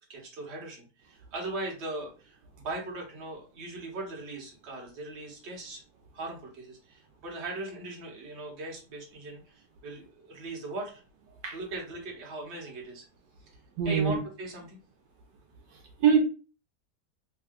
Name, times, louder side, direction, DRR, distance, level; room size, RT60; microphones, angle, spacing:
voice 1, 0.1-5.8 6.1-11.0 11.5-13.0 13.4-13.5 13.8-14.8, right 2 dB, 45° right, -1 dB, 1.2 m, -39 dB
voice 2, 13.8-14.2 15.7-16.2, right 7 dB, 80° right, 2 dB, 1.3 m, -24 dB
3.5 x 2.2 x 3.5 m, 0.35 s
omnidirectional pair, 1.9 m